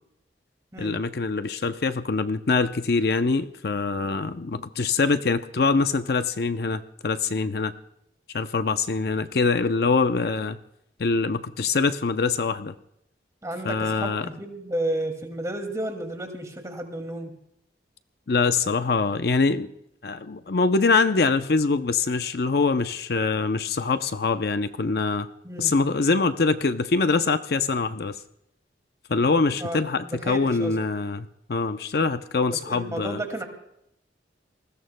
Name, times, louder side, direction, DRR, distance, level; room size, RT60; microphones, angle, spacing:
voice 1, 0.8-7.7 8.3-10.6 11.0-12.7 13.6-14.3 18.3-19.7 20.0-25.3 25.6-28.2 29.1-33.4, left 4 dB, 60° left, 10 dB, 0.6 m, -24 dB
voice 2, 13.4-17.3 25.4-25.7 29.6-30.7 32.7-33.4, right 1 dB, 20° right, 4 dB, 2.2 m, -32 dB
29.0 x 20.0 x 2.2 m, 0.78 s
head